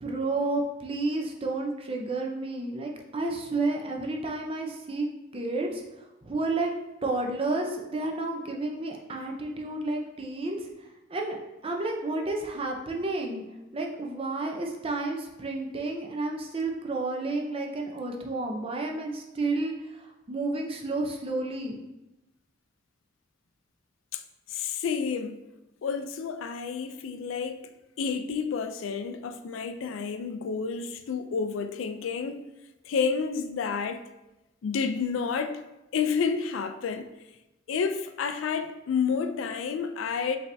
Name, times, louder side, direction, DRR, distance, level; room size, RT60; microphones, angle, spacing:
voice 1, 0.0-5.1 5.3-6.7 7.0-10.6 11.1-11.4 11.6-13.4 13.7-21.8, right 2 dB, 30° right, 0.6 m, -31 dB
voice 2, 24.5-25.4 25.8-27.7 28.0-32.4 32.9-34.0 34.6-35.6 35.9-37.1 37.7-40.4, left 6 dB, 85° left, 0.4 m, -30 dB
5.4 x 3.3 x 2.6 m
head